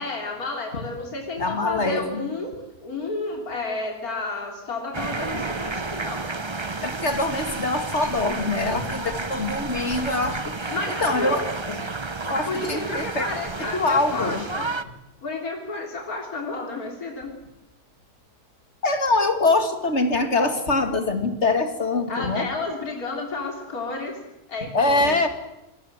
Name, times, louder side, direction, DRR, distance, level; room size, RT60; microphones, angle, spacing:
voice 1, 0.0-2.5 2.8-6.2 8.9-9.3 10.7-11.4 12.5-14.7 15.2-17.3 22.1-24.2 24.5-25.3, left 3 dB, 65° left, 2 dB, 3.6 m, -31 dB
voice 2, 1.4-2.2 6.8-10.5 11.0-11.8 12.3-13.3 13.6-14.4 18.8-22.5 24.7-25.3, left 2 dB, 45° left, 7 dB, 2.7 m, -23 dB
sound 1, 4.9-14.8, right 3 dB, 25° right, 0.8 m, -31 dB
27.0 x 21.0 x 7.6 m, 0.92 s
omnidirectional pair, 1.7 m